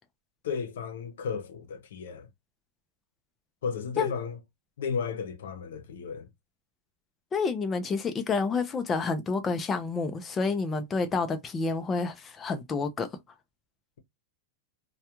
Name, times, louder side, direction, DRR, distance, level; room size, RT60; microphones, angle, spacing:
voice 1, 0.4-2.3 3.6-4.4 4.8-6.3, left 6 dB, 80° left, 0.6 m, -33 dB
voice 2, 7.3-13.1, left 4 dB, 15° left, 0.4 m, -29 dB
2.3 x 2.2 x 2.9 m
supercardioid pair, 150°, 0 cm